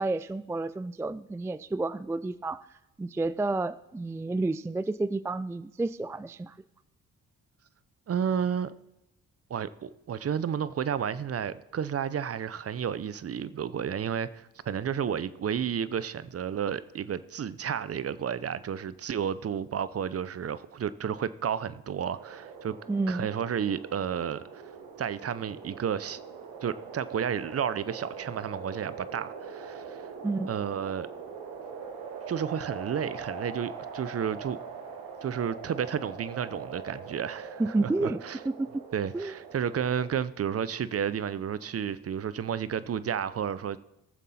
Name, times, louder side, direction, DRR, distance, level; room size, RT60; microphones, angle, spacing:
voice 1, 0.0-2.7 3.0-6.5 22.9-23.3 30.2-30.5 37.6-38.2 38.4-38.8 39.1-39.4, right 2 dB, 10° right, 0.3 m, -30 dB
voice 2, 8.1-8.7 9.5-22.8 23.1-24.6 25.0-26.2 26.6-30.1 30.5-31.1 32.3-34.6 35.2-38.4 38.9-43.8, right 8 dB, 40° right, 0.6 m, -32 dB
sound 1, 22.1-40.1, right 5 dB, 85° right, 1.6 m, -42 dB
17.0 x 7.2 x 4.2 m
supercardioid pair, 55°, 36 cm